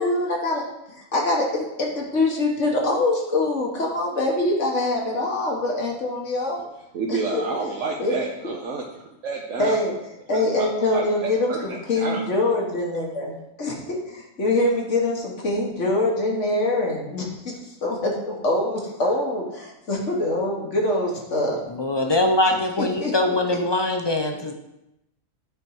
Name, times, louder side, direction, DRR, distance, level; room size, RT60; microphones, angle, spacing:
voice 1, 0.0-6.6 7.1-7.4 8.0-8.2 9.6-9.9 10.3-17.5 17.8-21.6 22.4-23.4, left 2 dB, 55° left, -1 dB, 1.7 m, -24 dB
voice 2, 6.9-9.8 10.6-12.2, right 4 dB, 60° right, -1 dB, 1.2 m, -30 dB
voice 3, 21.7-24.5, left 2 dB, 35° left, 4 dB, 0.4 m, -22 dB
9.4 x 4.6 x 4.7 m, 0.87 s
omnidirectional pair, 1.5 m